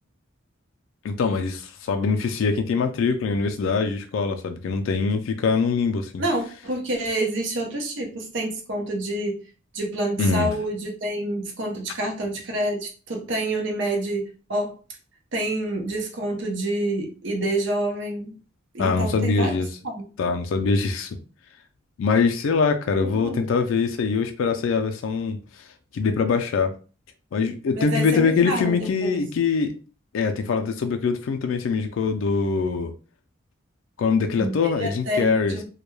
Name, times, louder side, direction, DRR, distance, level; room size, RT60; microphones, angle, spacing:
voice 1, 1.0-6.2 10.2-10.5 18.8-19.7 20.2-21.1 22.0-25.4 25.9-26.7 27.3-29.7 30.1-32.9 34.0-35.6, left 4 dB, 75° left, 0.3 m, -23 dB
voice 2, 6.2-9.4 9.7-14.7 15.3-18.4 18.7-19.6 19.8-20.0 23.0-23.5 27.7-29.2 34.4-35.6, right 1 dB, 60° right, 0.6 m, -28 dB
2.2 x 2.2 x 3.0 m
head